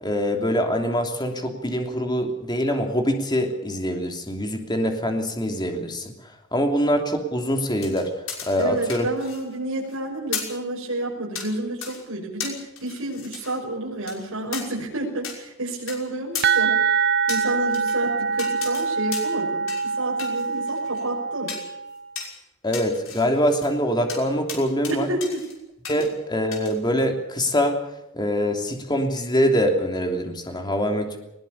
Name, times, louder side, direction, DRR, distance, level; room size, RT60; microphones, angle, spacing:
voice 1, 0.0-6.1 6.5-8.1 8.4-9.1 22.6-25.1 25.9-27.8 28.1-31.2, equal, 20° left, 4 dB, 3.0 m, -24 dB
sound 1, 7.8-9.5 9.8-10.0 10.3-10.6 11.4-11.5 11.8-12.0 12.4-13.6 14.1-14.2 14.5-14.6 15.2-15.4 15.9-16.0 16.3-16.5 17.3-18.0 18.4-18.9 19.1-19.4 19.7-19.9 20.2-21.0 21.5-21.7 22.2-22.3 22.7-23.7 24.1-24.2 24.5-24.9 25.2-25.5 25.8-26.1 26.5-26.7, left 6 dB, 60° left, 5.9 m, -34 dB
voice 2, 8.6-16.8 17.3-21.5 24.9-25.4, right 2 dB, 70° right, -3 dB, 6.2 m, -30 dB
sound 2, 16.4-22.0, right 5 dB, 50° right, 0.7 m, -24 dB
21.0 x 20.5 x 7.0 m, 0.86 s
head